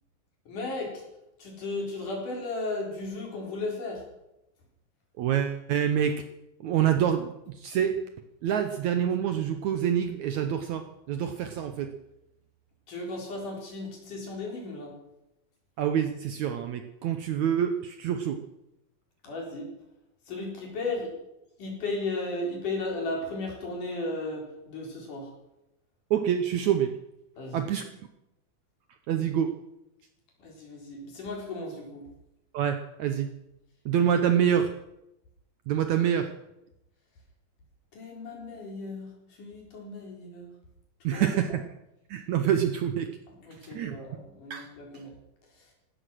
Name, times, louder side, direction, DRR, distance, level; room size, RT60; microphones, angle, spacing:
voice 1, 0.5-1.0 1.4-4.0 12.9-15.0 19.2-19.7 20.3-21.1 21.6-25.3 27.4-27.7 30.4-32.1 34.2-34.3 37.9-40.5 41.1-41.3 43.4-45.1, left 2 dB, 55° left, -1 dB, 5.6 m, -35 dB
voice 2, 5.2-6.2 6.6-8.0 8.4-11.9 15.8-18.4 26.1-26.9 27.5-27.8 29.1-29.5 32.5-33.3 33.8-34.7 35.7-36.3 41.0-41.6 42.1-43.1 43.6-44.0 44.5-44.7, right 9 dB, 75° right, 7 dB, 1.7 m, -26 dB
16.0 x 13.5 x 6.2 m, 0.89 s
omnidirectional pair, 4.3 m